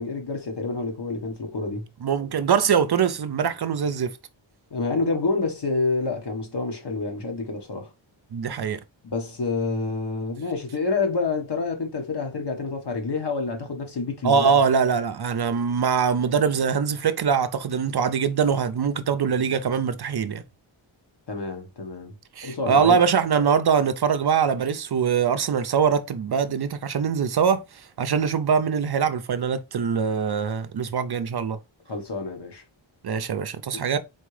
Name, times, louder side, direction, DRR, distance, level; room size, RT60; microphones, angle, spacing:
voice 1, 0.0-1.9 4.7-7.9 9.0-14.6 21.3-22.1 22.4-23.0 31.9-32.6, left 3 dB, 55° left, 1.3 m, -28 dB
voice 2, 2.0-4.1 8.3-8.8 14.2-20.4 22.4-27.6 28.0-31.6 33.0-34.0, right 6 dB, 55° right, 0.5 m, -23 dB
4.2 x 3.7 x 3.2 m
wide cardioid pair, 125°, 48 cm